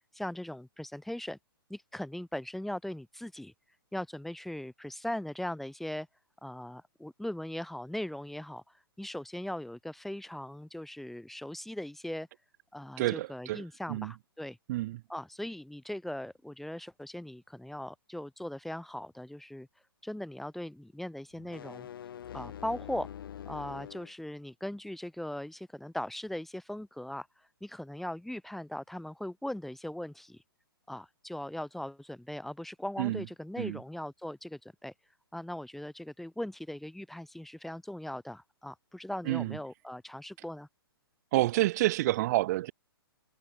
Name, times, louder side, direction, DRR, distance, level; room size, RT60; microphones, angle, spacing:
voice 1, 0.1-1.4 1.7-3.5 3.9-6.1 6.4-8.6 9.0-12.3 12.7-14.6 15.1-19.7 20.0-21.9 22.3-23.1 23.5-27.3 27.6-30.4 30.9-34.9 35.3-40.7, left 1 dB, ahead, 1.4 m, -39 dB
voice 2, 13.0-13.6 13.9-14.1 14.7-15.0 33.0-33.2 33.6-33.8 39.3-39.6 41.3-42.7, right 17 dB, 45° right, 0.7 m, -28 dB
sound 1, 21.3-24.1, left 9 dB, 60° left, 2.1 m, -44 dB
hypercardioid pair, 125°, 13 cm